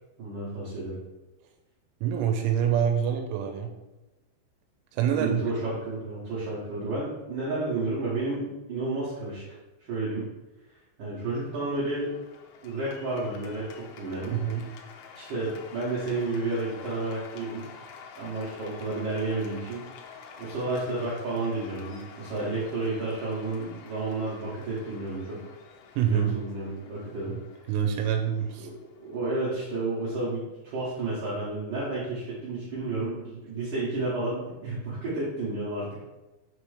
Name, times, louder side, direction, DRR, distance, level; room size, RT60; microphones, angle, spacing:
voice 1, 0.2-1.0 5.1-9.4 9.8-10.3 11.0-12.1 12.6-14.4 15.1-17.7 18.2-19.8 20.4-25.4 26.0-27.3 28.6-35.9, right 2 dB, 65° right, -8 dB, 2.1 m, -31 dB
voice 2, 2.0-3.7 4.9-5.4 14.3-14.6 26.0-26.4 27.3-27.4 27.7-28.7, right 8 dB, 90° right, 3 dB, 3.0 m, -26 dB
Cheering / Applause, 11.3-30.5, left 6 dB, 85° left, 2.7 m, -49 dB
6.7 x 3.0 x 4.9 m, 1.1 s
omnidirectional pair, 5.4 m